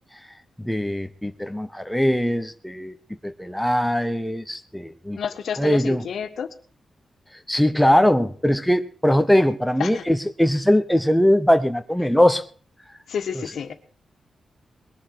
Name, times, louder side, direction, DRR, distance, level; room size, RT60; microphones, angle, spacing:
voice 1, 0.6-2.9 3.2-5.2 5.6-6.1 7.5-12.4, equal, ahead, 7 dB, 0.9 m, -21 dB
voice 2, 5.1-6.5 9.8-10.0 13.1-13.7, left 7 dB, 70° left, 7 dB, 1.7 m, -30 dB
21.0 x 7.4 x 7.8 m, 0.43 s
wide cardioid pair, 160°, 0 cm